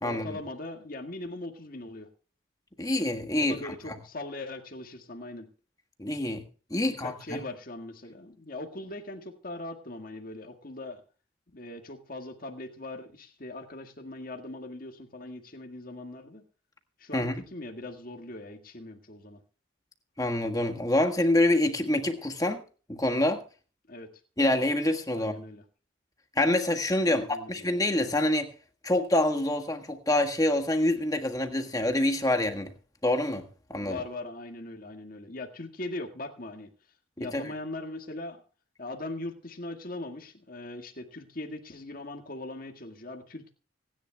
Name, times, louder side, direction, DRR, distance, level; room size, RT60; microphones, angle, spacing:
voice 1, 0.0-2.1 3.4-5.5 6.7-11.0 11.5-16.4 17.0-19.4 23.9-24.1 25.1-25.6 27.0-27.7 33.8-36.7 37.2-38.4 38.8-43.5, left 2 dB, 45° left, 1.8 m, -40 dB
voice 2, 2.8-3.6 6.0-6.4 6.7-7.4 17.1-17.3 20.2-22.6 22.9-23.4 24.4-25.4 26.4-28.5 28.8-32.7 33.0-33.4 33.7-34.0 37.2-37.4, left 1 dB, 20° left, 1.6 m, -26 dB
25.5 x 10.5 x 2.3 m
head